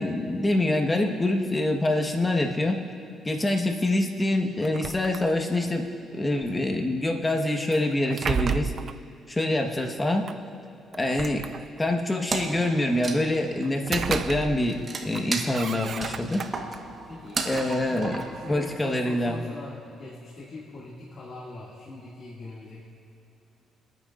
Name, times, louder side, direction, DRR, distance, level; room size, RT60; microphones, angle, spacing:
voice 1, 0.0-2.8 3.2-8.7 9.3-10.3 10.9-11.4 11.8-16.4 17.4-18.2 18.5-19.4, left 1 dB, 20° left, 3 dB, 1.3 m, -25 dB
sound 1, 4.6-5.7 7.7-9.0 10.3-10.4 10.9-12.0 13.6-14.8 15.1-16.8 17.3-18.9, right 6 dB, 50° right, 0.4 m, -33 dB
Wood, 12.3-19.0, right 3 dB, 35° right, 1.3 m, -35 dB
voice 2, 17.1-22.8, left 2 dB, 50° left, -5 dB, 2.3 m, -42 dB
25.0 x 9.3 x 2.6 m, 2.8 s
cardioid pair, 90°, 0 cm